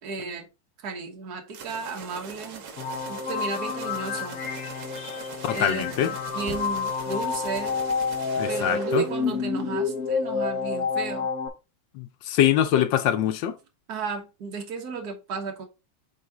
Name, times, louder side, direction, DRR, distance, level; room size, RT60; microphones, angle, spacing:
voice 1, 0.0-0.5 0.8-2.6 3.1-4.4 5.5-7.8 8.5-11.3 13.9-15.7, right 4 dB, 55° right, 1.7 m, -34 dB
sound 1, 1.5-10.1, right 6 dB, 80° right, 1.8 m, -42 dB
sound 2, 2.3-4.1 4.5-5.1 5.8-7.0 7.3-7.4, equal, 30° left, 1.1 m, -45 dB
sound 3, 2.8-11.5, left 4 dB, 55° left, 1.3 m, -29 dB
voice 2, 5.4-6.1 8.4-9.1 11.9-13.6, left 10 dB, 75° left, 1.4 m, -23 dB
6.4 x 4.2 x 3.6 m
omnidirectional pair, 2.1 m